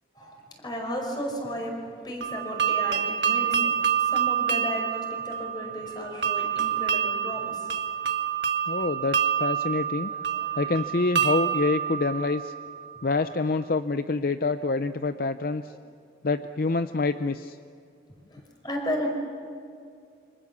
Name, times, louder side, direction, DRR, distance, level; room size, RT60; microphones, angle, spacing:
voice 1, 0.2-7.7 10.3-10.6 15.6-15.8 18.3-19.1, equal, 25° left, 1 dB, 5.4 m, -34 dB
sound 1, 2.2-13.0, right 8 dB, 75° right, 1.6 m, -27 dB
voice 2, 8.7-10.1 10.6-12.5 13.0-15.7 16.2-17.6, left 3 dB, 50° left, 11 dB, 0.5 m, -26 dB
28.5 x 25.5 x 7.2 m, 2.4 s
head